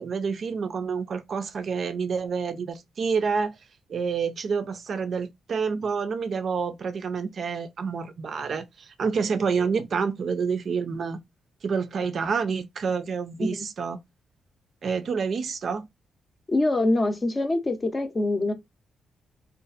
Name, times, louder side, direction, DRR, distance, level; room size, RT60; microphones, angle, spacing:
voice 1, 0.0-3.6 3.9-11.2 11.6-14.0 14.8-15.9, right 5 dB, 55° right, 0.3 m, -28 dB
voice 2, 16.5-18.5, left 2 dB, 25° left, 0.5 m, -24 dB
2.6 x 2.4 x 2.3 m
cardioid pair, 105°, 0 cm